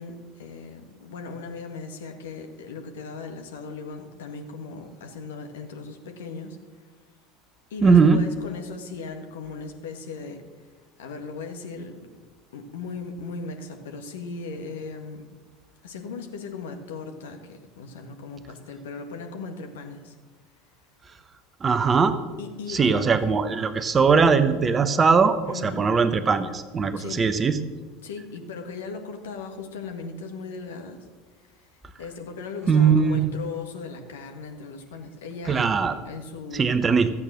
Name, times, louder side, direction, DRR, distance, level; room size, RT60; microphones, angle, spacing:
voice 1, 0.0-6.6 7.7-10.4 11.0-12.0 12.5-15.3 15.8-20.2 22.4-23.1 25.5-25.9 27.0-27.2 28.0-31.1 31.6-31.7 32.0-36.7, left 4 dB, 70° left, 4 dB, 1.6 m, -37 dB
voice 2, 7.8-8.2 21.6-22.2 22.7-27.6 32.7-33.3 35.5-36.0 36.5-37.1, right 5 dB, 25° right, 11 dB, 0.9 m, -20 dB
13.5 x 8.5 x 6.3 m, 1.4 s
figure-of-eight pair, 75°, 0 cm